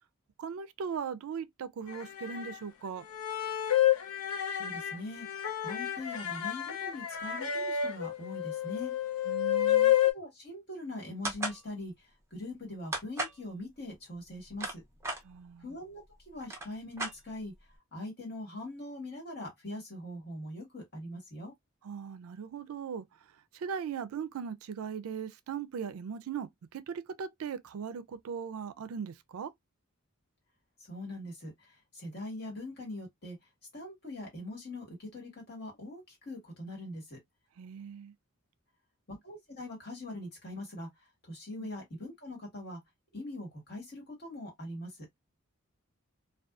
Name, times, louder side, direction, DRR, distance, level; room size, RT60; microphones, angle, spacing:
voice 1, 0.4-3.0 9.3-9.9 15.2-15.8 21.8-23.1 23.5-29.5 37.6-38.1 41.6-41.7, right 7 dB, 80° right, 0.4 m, -39 dB
sound 1, 1.9-2.6 3.1-10.1, left 11 dB, 85° left, 0.6 m, -30 dB
voice 2, 4.6-8.9 10.1-14.8 15.6-17.5 17.9-21.5 30.8-33.4 33.7-37.2 39.1-40.9 41.2-42.8 43.1-45.1, left 1 dB, 45° left, 1.5 m, -42 dB
sound 2, 11.2-11.6 12.9-13.4 14.3-15.2 16.0-16.1 16.4-17.6, right 2 dB, 10° right, 0.5 m, -35 dB
2.5 x 2.3 x 2.3 m
head